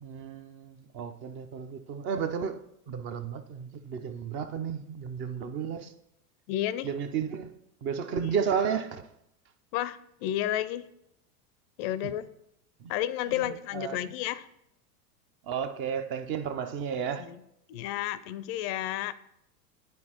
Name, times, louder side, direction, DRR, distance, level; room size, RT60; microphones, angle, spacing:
voice 1, 0.0-5.9 6.8-7.5 7.8-9.1 12.0-12.1 12.8-12.9 13.3-14.0 15.5-17.3, right 7 dB, 30° right, 0.4 m, -33 dB
voice 2, 6.5-6.9 8.2-8.4 9.7-10.9 11.8-12.3 12.9-14.5 17.2-17.4 17.7-19.1, left 13 dB, 45° left, 0.4 m, -31 dB
10.5 x 4.2 x 2.9 m
hypercardioid pair, 100°, 46 cm